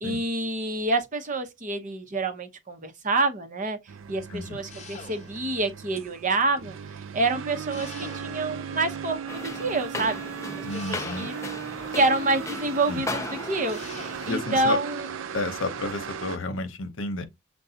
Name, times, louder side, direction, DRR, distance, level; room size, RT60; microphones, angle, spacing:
voice 1, 0.0-3.8 4.1-6.8 7.1-11.3 11.9-15.1, right 2 dB, 40° right, 0.8 m, -27 dB
sound 1, 3.9-16.4, right 7 dB, 85° right, 0.4 m, -37 dB
sound 2, 4.7-5.6 7.7-8.7 10.7-11.7 13.7-14.5, left 5 dB, 35° left, 0.9 m, -45 dB
sound 3, 9.3-14.3, left 2 dB, 15° left, 0.5 m, -37 dB
voice 2, 10.6-11.3 12.9-13.0 14.3-14.8 15.3-17.2, left 2 dB, 80° left, 0.8 m, -31 dB
6.6 x 2.3 x 2.7 m
head